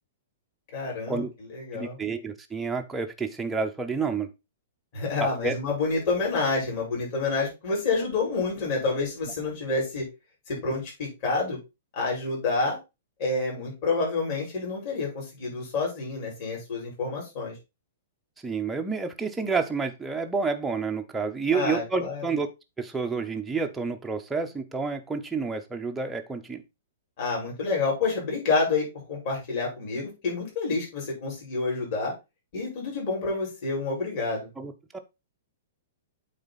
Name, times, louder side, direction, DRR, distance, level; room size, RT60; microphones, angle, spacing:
voice 1, 0.7-1.2 1.5-2.0 4.9-10.1 10.5-11.6 11.9-12.8 13.2-17.5 21.5-22.2 27.2-32.1 32.5-34.5, left 3 dB, 35° left, 5.2 m, -28 dB
voice 2, 1.7-4.3 5.2-5.6 18.4-22.5 22.8-26.6 34.6-35.0, right 4 dB, 5° right, 0.7 m, -29 dB
8.6 x 4.0 x 4.0 m
hypercardioid pair, 170°, 0 cm